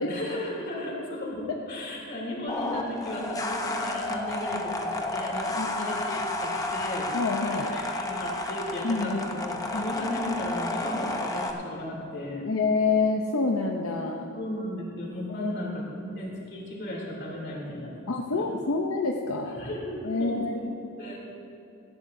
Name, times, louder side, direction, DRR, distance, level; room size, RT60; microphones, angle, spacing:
voice 1, 0.0-7.1 7.5-12.5 14.3-18.5 19.6-21.3, left 1 dB, 50° left, -3 dB, 3.2 m, -35 dB
sound 1, 2.5-11.5, left 2 dB, 15° left, 0.9 m, -31 dB
voice 2, 5.6-5.9 7.1-7.7 8.8-9.2 9.7-9.8 12.5-14.4 15.3-15.5 18.1-19.6 20.0-20.6, left 3 dB, 80° left, 1 dB, 0.7 m, -27 dB
17.5 x 14.5 x 2.7 m, 2.8 s
head